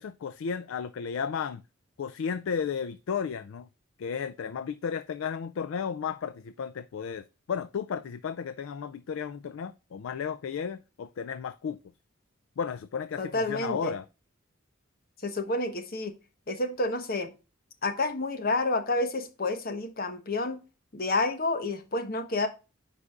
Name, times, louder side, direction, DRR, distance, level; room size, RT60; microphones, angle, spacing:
voice 1, 0.0-1.6 2.0-3.7 4.0-11.8 12.6-14.0, left 6 dB, 90° left, 0.4 m, -33 dB
voice 2, 13.2-13.9 15.2-16.1 16.5-17.3 17.8-20.6 20.9-22.5, left 2 dB, 50° left, 1.1 m, -29 dB
9.6 x 4.9 x 2.4 m
head